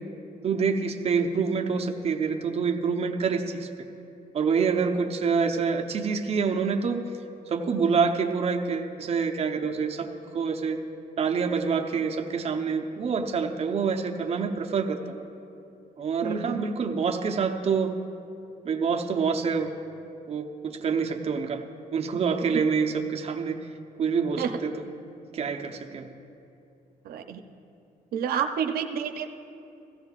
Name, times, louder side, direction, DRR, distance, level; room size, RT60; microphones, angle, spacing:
voice 1, 0.4-3.7 4.3-7.1 7.5-10.8 11.2-15.2 16.0-17.9 18.6-19.7 20.3-21.6 21.9-23.6 24.0-24.8 25.3-26.1, right 5 dB, 40° right, 3 dB, 0.7 m, -26 dB
voice 2, 16.2-16.6 24.4-24.5 27.0-27.4 28.1-29.3, right 7 dB, 85° right, 5 dB, 0.6 m, -29 dB
16.5 x 15.5 x 2.4 m, 2.7 s
cardioid pair, 150°, 15 cm